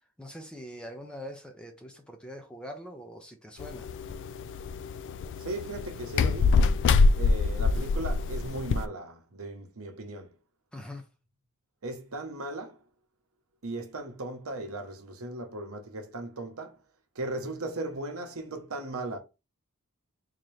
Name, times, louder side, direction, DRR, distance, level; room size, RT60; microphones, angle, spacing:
voice 1, 0.2-3.9 10.7-11.1, equal, 5° left, 0.6 m, -43 dB
sound 1, 3.6-8.8, left 4 dB, 55° left, 0.3 m, -25 dB
voice 2, 5.4-6.6 7.1-10.3 11.8-12.8 13.6-16.8 17.1-19.2, right 2 dB, 65° right, 1.0 m, -37 dB
3.8 x 2.9 x 3.2 m
head